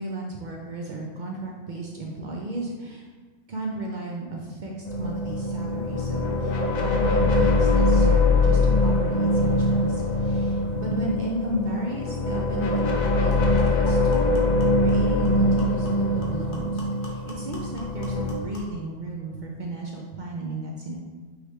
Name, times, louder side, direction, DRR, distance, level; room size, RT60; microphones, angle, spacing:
voice 1, 0.0-3.1 3.5-4.7 5.0-6.5 6.8-14.4 14.8-21.0, right 1 dB, 75° right, -2 dB, 0.4 m, -33 dB
sound 1, 4.9-18.3, left 2 dB, 65° left, 0.4 m, -22 dB
sound 2, 11.8-11.9 12.3-12.4 12.8-18.8, left 1 dB, 45° left, 0.9 m, -43 dB
4.9 x 3.2 x 3.2 m, 1.4 s
omnidirectional pair, 1.4 m